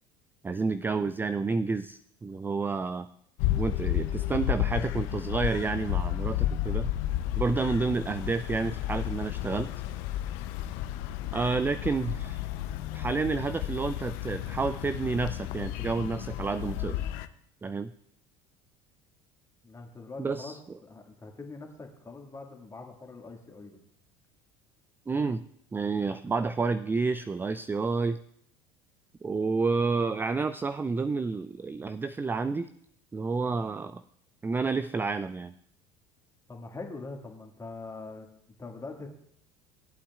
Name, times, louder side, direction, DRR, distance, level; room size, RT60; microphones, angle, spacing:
voice 1, 0.4-3.1 3.6-6.9 7.4-9.7 11.3-12.5 12.9-17.1 17.6-17.9 20.2-20.6 25.1-25.4 25.7-28.2 29.2-32.7 33.1-34.0 34.4-35.5, right 4 dB, 15° right, 12 dB, 0.3 m, -30 dB
sound 1, 3.4-17.3, left 13 dB, 65° left, 0.6 m, -32 dB
voice 2, 19.6-20.6 20.8-23.8 36.5-38.3 38.6-39.1, left 3 dB, 20° left, 2 dB, 1.9 m, -43 dB
18.5 x 8.4 x 2.4 m, 0.68 s
hypercardioid pair, 70°, 16 cm